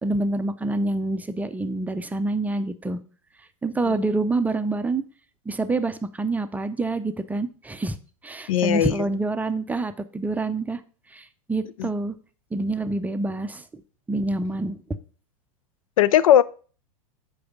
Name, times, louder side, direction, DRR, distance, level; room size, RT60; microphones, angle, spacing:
voice 1, 0.0-3.0 3.6-5.0 5.5-8.0 8.2-10.8 11.1-12.1 12.5-13.6 14.1-14.8, right 2 dB, 10° right, 0.5 m, -27 dB
voice 2, 8.5-9.0 11.8-11.9 16.0-16.4, left 11 dB, 75° left, 0.4 m, -18 dB
7.7 x 4.7 x 5.2 m
hypercardioid pair, 100°, 18 cm